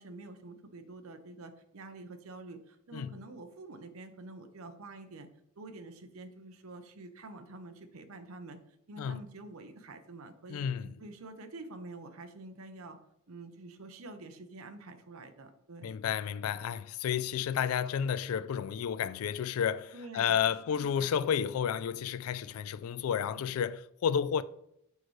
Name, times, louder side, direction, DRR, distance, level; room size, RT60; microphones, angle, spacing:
voice 1, 0.0-5.3 5.6-8.6 8.9-10.7 11.0-13.0 13.3-15.9 19.9-20.4 20.7-21.1 23.3-23.6, right 2 dB, 80° right, 0.7 m, -47 dB
voice 2, 10.5-10.9 15.8-24.4, left 8 dB, 85° left, 0.3 m, -31 dB
6.4 x 4.7 x 3.1 m
head